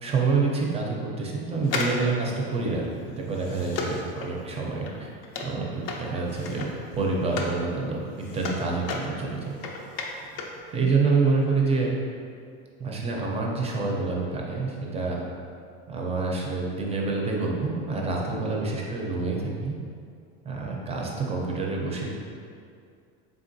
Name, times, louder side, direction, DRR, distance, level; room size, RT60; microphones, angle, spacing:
voice 1, 0.0-2.9 3.2-5.1 5.4-6.7 6.9-8.0 8.3-9.4 10.7-11.9 12.8-15.2 15.9-19.8 20.4-22.1, right 4 dB, 20° right, -2 dB, 0.5 m, -27 dB
sound 1, 1.6-7.6 8.0-10.6 10.9-11.0, left 3 dB, 55° left, 0.5 m, -35 dB
3.6 x 3.6 x 2.6 m, 2.3 s
supercardioid pair, 125°, 30 cm